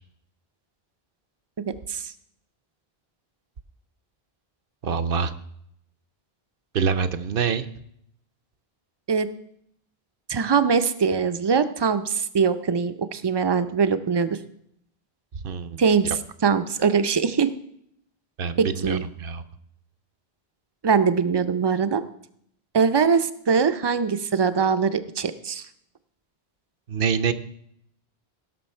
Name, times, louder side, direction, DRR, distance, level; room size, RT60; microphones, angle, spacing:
voice 1, 1.7-2.1 9.1-9.3 10.3-14.4 15.8-16.1 16.4-17.5 18.6-19.0 20.8-22.0 22.7-25.6, right 6 dB, 35° right, 11 dB, 0.5 m, -22 dB
voice 2, 4.8-5.3 6.7-7.7 15.4-16.2 18.4-19.4 26.9-27.3, right 6 dB, 65° right, 12 dB, 0.8 m, -26 dB
17.0 x 6.3 x 4.4 m, 0.71 s
omnidirectional pair, 1.0 m